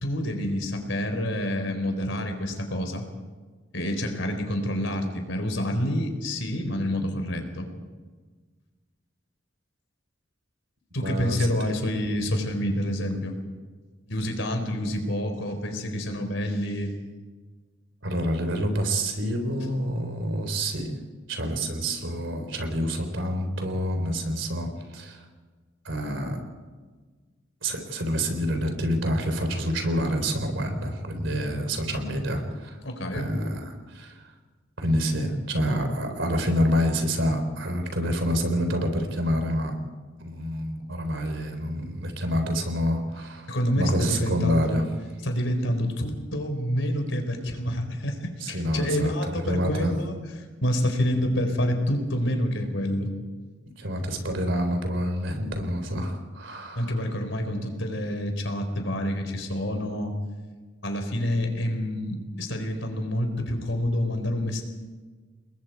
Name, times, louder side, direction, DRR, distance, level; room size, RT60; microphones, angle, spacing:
voice 1, 0.0-3.0 3.7-7.7 10.9-13.3 14.1-16.9 32.8-33.3 43.5-44.8 45.2-50.2 50.6-53.1 56.7-60.1 60.8-64.6, equal, 75° left, 5 dB, 4.3 m, -28 dB
voice 2, 11.0-11.5 18.0-21.0 21.3-25.2 25.8-26.4 27.6-32.8 33.1-34.2 34.8-39.8 40.2-44.8 48.4-49.9 53.8-57.0 57.5-57.6, equal, 70° right, 6 dB, 3.9 m, -27 dB
29.0 x 21.0 x 4.8 m, 1.4 s
head